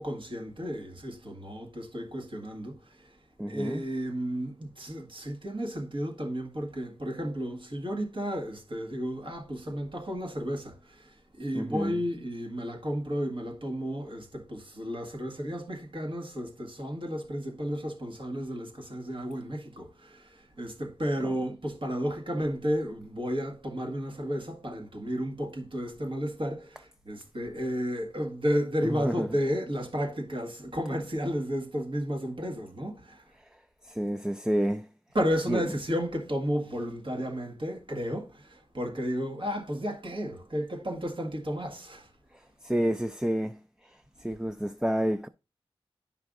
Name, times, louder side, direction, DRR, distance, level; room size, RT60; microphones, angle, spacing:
voice 1, 0.0-3.2 3.5-33.3 35.1-42.1, equal, 55° right, 1.7 m, -33 dB
voice 2, 3.4-3.8 11.5-12.0 21.2-21.3 28.8-29.3 33.4-34.9 35.5-35.6 42.3-45.3, equal, 5° right, 0.4 m, -30 dB
10.5 x 5.6 x 2.5 m
cardioid pair, 50°, 10 cm